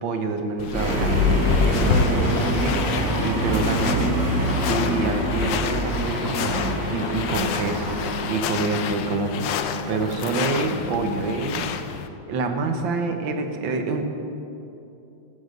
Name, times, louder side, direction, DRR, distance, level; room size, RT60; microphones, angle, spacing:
voice 1, 0.0-1.2 1.6-2.9 3.2-4.2 4.7-8.0 8.3-9.5 9.9-11.7 12.3-14.1, right 4 dB, 80° right, 6 dB, 1.8 m, -27 dB
sound 1, 0.6-12.1, left 7 dB, 75° left, 1.3 m, -30 dB
sound 2, 0.7-8.5, left 1 dB, 5° right, 3.6 m, -24 dB
sound 3, 4.1-11.4, left 2 dB, 50° left, 1.0 m, -36 dB
14.5 x 9.6 x 6.5 m, 2.8 s
omnidirectional pair, 2.1 m